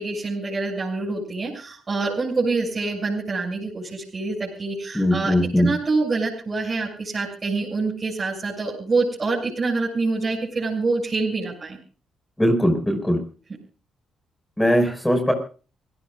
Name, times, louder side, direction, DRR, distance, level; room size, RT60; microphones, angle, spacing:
voice 1, 0.0-11.8, right 3 dB, 40° right, -3 dB, 6.7 m, -26 dB
voice 2, 4.9-5.7 12.4-13.2 14.6-15.3, equal, 10° left, 5 dB, 5.6 m, -20 dB
28.0 x 16.5 x 2.5 m, 0.37 s
supercardioid pair, 65°, 0 cm